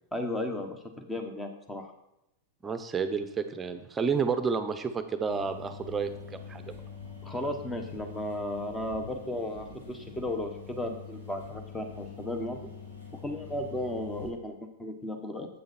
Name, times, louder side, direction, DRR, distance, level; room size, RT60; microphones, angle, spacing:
voice 1, 0.1-1.9 7.2-12.7 13.2-15.5, left 1 dB, 10° left, 5 dB, 1.4 m, -35 dB
voice 2, 2.6-6.8, right 5 dB, 20° right, 9 dB, 0.9 m, -30 dB
sound 1, 5.3-14.3, left 5 dB, 85° left, 2.5 m, -45 dB
8.2 x 6.3 x 4.4 m, 0.84 s
hypercardioid pair, 105°, 0 cm